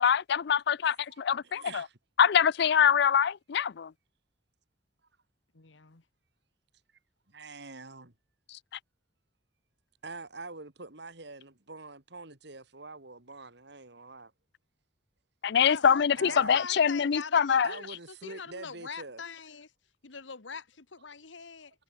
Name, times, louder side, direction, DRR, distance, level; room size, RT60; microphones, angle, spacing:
voice 1, 0.0-1.9 2.2-3.9 15.4-17.7, left 7 dB, 60° left, 0.4 m, -24 dB
voice 2, 1.1-2.0 7.3-8.1 10.0-14.3 16.1-16.6 17.6-19.2, right 3 dB, 65° right, 2.8 m, -45 dB
voice 3, 5.5-6.0 15.6-19.7 20.0-21.7, left 5 dB, 80° left, 1.5 m, -42 dB
head